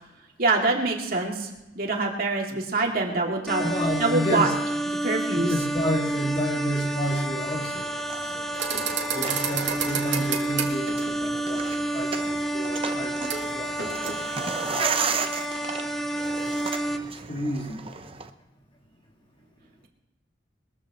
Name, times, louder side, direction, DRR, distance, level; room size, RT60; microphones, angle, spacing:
voice 1, 0.4-1.5 1.7-3.7 4.0-4.5 5.0-5.5, right 3 dB, 55° right, -1 dB, 2.5 m, -25 dB
sound 1, 3.5-17.0, right 1 dB, ahead, 0.8 m, -29 dB
voice 2, 3.6-4.5 5.3-7.9 8.3-8.5 9.1-13.7 14.4-15.0 17.3-17.8, equal, 30° left, 1 dB, 2.0 m, -30 dB
sound 2, 7.4-18.3, right 5 dB, 30° right, 0.8 m, -35 dB
sound 3, 8.5-11.3 13.3-13.5 13.8-14.1, right 7 dB, 80° right, 2.1 m, -30 dB
21.5 x 14.5 x 3.1 m, 0.99 s
head